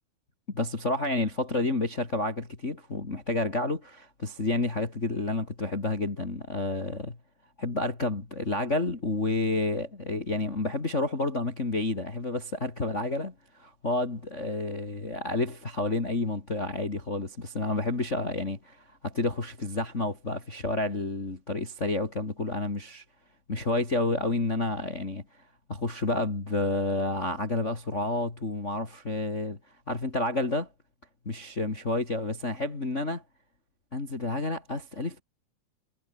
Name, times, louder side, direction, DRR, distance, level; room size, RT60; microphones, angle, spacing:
voice 1, 0.5-7.2 7.6-23.0 23.5-25.2 25.7-29.6 29.9-30.7 31.3-33.2 33.9-35.2, left 2 dB, 20° left, 2.5 m, -30 dB
omnidirectional pair, 4.3 m